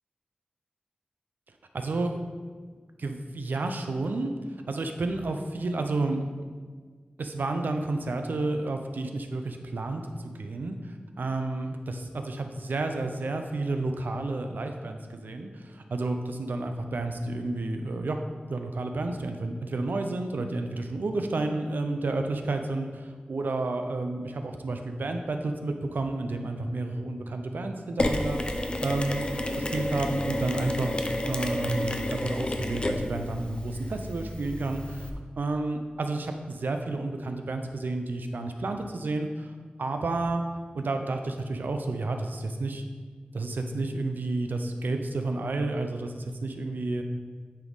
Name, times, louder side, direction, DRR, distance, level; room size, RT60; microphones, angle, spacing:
voice 1, 1.7-2.2 3.0-4.3 4.7-6.4 7.2-18.2 18.5-28.4 28.8-29.3 29.5-31.0 31.3-35.1 35.4-39.5 39.8-40.4 40.7-42.8 43.3-47.0, right 2 dB, 80° right, 5 dB, 0.6 m, -31 dB
Mechanisms, 28.0-35.1, left 1 dB, 35° left, 0.5 m, -30 dB
8.8 x 3.6 x 4.0 m, 1.5 s
wide cardioid pair, 90°, 3 cm